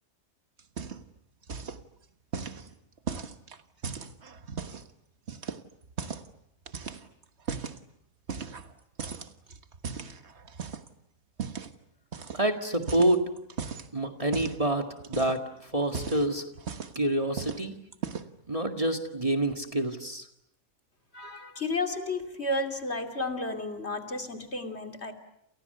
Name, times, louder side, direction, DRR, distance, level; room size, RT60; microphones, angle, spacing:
sound 1, 0.6-1.2 1.4-1.8 2.3-4.9 5.3-6.3 6.7-7.8 8.3-8.7 9.0-10.9 11.4-11.7 12.1-12.4 12.7-13.9 14.3-14.6 15.0-15.5 15.8-17.0 17.4-17.6 17.9-18.4, right 6 dB, 55° right, 1.6 m, -37 dB
voice 1, 12.3-13.2 13.9-16.4 17.0-17.7 18.5-20.2, right 1 dB, 25° right, 4 dB, 2.0 m, -27 dB
voice 2, 21.1-25.1, left 2 dB, 50° left, 5 dB, 3.1 m, -32 dB
29.0 x 29.0 x 6.9 m, 0.76 s
omnidirectional pair, 1.4 m